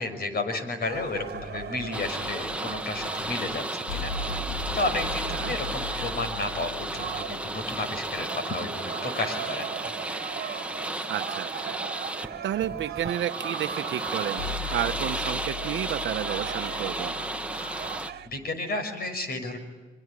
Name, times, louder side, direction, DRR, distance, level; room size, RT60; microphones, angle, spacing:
voice 1, 0.0-4.1 4.7-9.9 18.3-19.6, left 2 dB, 50° left, 8 dB, 6.2 m, -32 dB
sound 1, 0.8-8.1 14.4-18.5, left 5 dB, 80° left, 3.3 m, -39 dB
sound 2, 0.8-18.3, right 8 dB, 50° right, 1.7 m, -39 dB
sound 3, 1.9-18.1, right 2 dB, 5° right, 1.3 m, -34 dB
voice 2, 11.1-11.8 12.4-14.4 14.7-17.1, right 11 dB, 70° right, 9 dB, 1.0 m, -31 dB
25.0 x 24.0 x 9.9 m, 1.3 s
cardioid pair, 90°, 20 cm